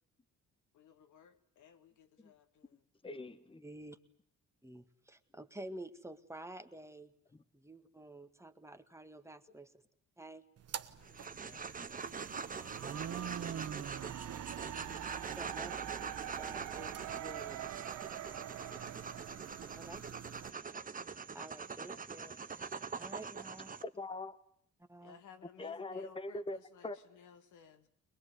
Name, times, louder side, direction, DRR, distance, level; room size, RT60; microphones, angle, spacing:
voice 1, 0.7-2.8 10.9-13.0 14.5-15.6 18.2-19.3 20.7-21.0 25.0-27.9, left 8 dB, 75° left, 2.1 m, -60 dB
voice 2, 2.7-3.6 23.8-24.4 25.6-26.6 26.8-27.0, left 2 dB, 15° left, 1.4 m, -42 dB
voice 3, 3.6-4.0 4.6-7.1 7.5-9.8 10.2-10.5 15.3-15.7 16.2-17.8 19.8-20.0 21.3-23.8 24.8-25.2, right 1 dB, 10° right, 1.8 m, -50 dB
sound 1, 10.6-20.5, right 9 dB, 55° right, 1.3 m, -46 dB
sound 2, 11.0-23.8, right 5 dB, 30° right, 1.1 m, -44 dB
sound 3, 13.9-20.0, right 14 dB, 90° right, 1.1 m, -46 dB
22.5 x 21.5 x 9.7 m
cardioid pair, 90°, 30 cm